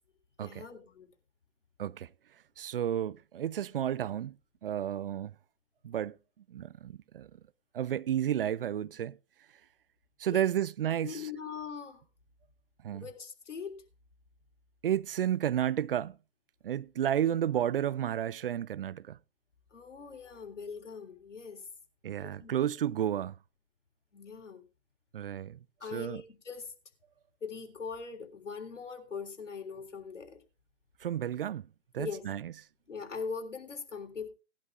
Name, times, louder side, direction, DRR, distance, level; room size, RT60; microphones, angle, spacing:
voice 1, 0.4-1.1 10.3-10.4 11.0-12.0 12.9-13.8 19.7-21.6 22.2-22.6 24.1-24.6 25.8-26.7 27.4-30.4 32.0-32.2 32.9-34.3, left 5 dB, 85° left, 3.6 m, -41 dB
voice 2, 2.6-4.4 4.6-5.3 5.8-6.2 6.5-7.3 7.7-9.2 10.2-11.2 12.8-13.0 14.8-16.2 16.6-19.2 22.0-23.4 25.1-25.6 25.9-26.2 31.0-31.7 31.9-32.5, right 10 dB, 50° right, 0.5 m, -32 dB
19.5 x 11.5 x 2.4 m
hypercardioid pair, 145°, 36 cm